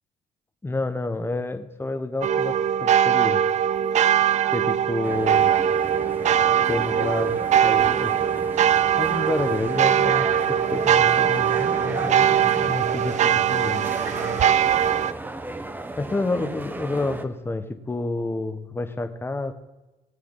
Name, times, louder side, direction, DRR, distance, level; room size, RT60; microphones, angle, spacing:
voice 1, 0.6-3.4 4.5-5.5 6.7-8.3 8.9-13.9 16.0-19.5, left 2 dB, 15° left, 8 dB, 1.1 m, -29 dB
sound 1, 2.2-15.1, right 9 dB, 45° right, 0.4 m, -21 dB
sound 2, 5.0-17.3, right 2 dB, 10° right, 0.9 m, -35 dB
19.0 x 8.6 x 4.0 m, 1.1 s
cardioid pair, 110°, 17 cm